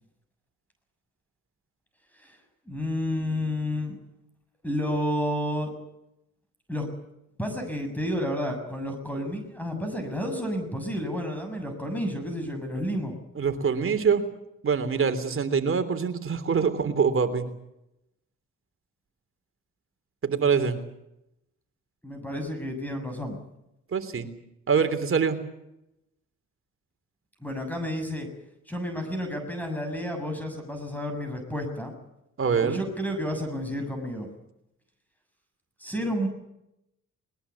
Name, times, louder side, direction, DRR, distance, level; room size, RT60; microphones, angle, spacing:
voice 1, 2.7-3.9 4.6-5.7 6.7-6.9 7.4-13.1 22.0-23.4 27.4-28.3 28.7-31.9 32.6-34.3 35.8-36.3, equal, 5° left, 5 dB, 6.8 m, -30 dB
voice 2, 13.3-14.2 14.6-17.4 20.2-20.8 23.9-24.3 24.7-25.4 32.4-32.8, right 6 dB, 45° right, 9 dB, 3.3 m, -24 dB
21.5 x 20.5 x 8.3 m, 0.85 s
cardioid pair, 90°, 30 cm